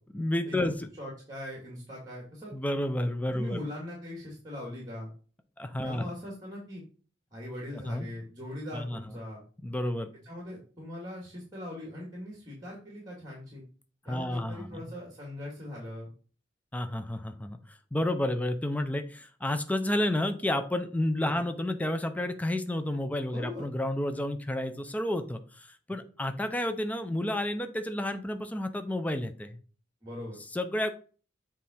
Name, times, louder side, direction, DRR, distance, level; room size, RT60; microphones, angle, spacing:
voice 1, 0.1-0.9 2.5-3.6 5.6-6.1 7.7-8.1 8.7-9.0 9.6-10.1 14.1-14.8 16.7-29.6 30.5-30.9, left 1 dB, 10° left, 7 dB, 0.5 m, -31 dB
voice 2, 1.0-2.5 3.3-5.1 5.8-6.8 7.3-9.4 10.2-13.6 14.0-16.1 23.3-23.7 30.0-30.4, left 1 dB, 20° right, -2 dB, 1.9 m, -40 dB
7.3 x 3.7 x 4.3 m, 0.39 s
head